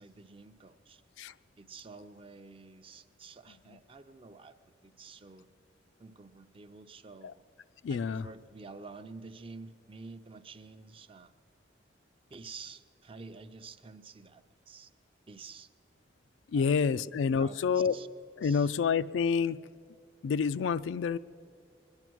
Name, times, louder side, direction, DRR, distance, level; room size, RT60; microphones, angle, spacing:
voice 1, 0.0-1.0 1.6-4.6 4.8-5.5 6.0-7.4 7.9-11.3 12.3-14.9 15.3-15.7 16.5-17.1 17.4-18.1 18.4-18.7, right 4 dB, 30° right, 10 dB, 0.5 m, -49 dB
voice 2, 7.8-8.2 16.5-18.0 18.4-19.6 20.2-21.2, left 6 dB, 80° left, 15 dB, 0.3 m, -28 dB
22.0 x 10.5 x 6.2 m, 2.5 s
head